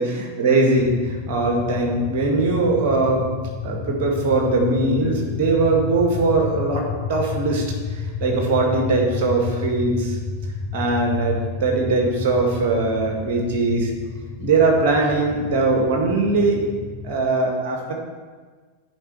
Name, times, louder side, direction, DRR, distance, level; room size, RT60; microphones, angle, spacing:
voice 1, 0.0-3.3 3.6-7.7 7.9-10.2 10.7-13.9 14.4-16.6 17.0-17.9, right 3 dB, 50° right, 1 dB, 2.0 m, -21 dB
sound 1, 0.8-17.2, left 5 dB, 30° left, 1.2 m, -31 dB
8.9 x 5.1 x 6.2 m, 1.5 s
figure-of-eight pair, 90°, 0 cm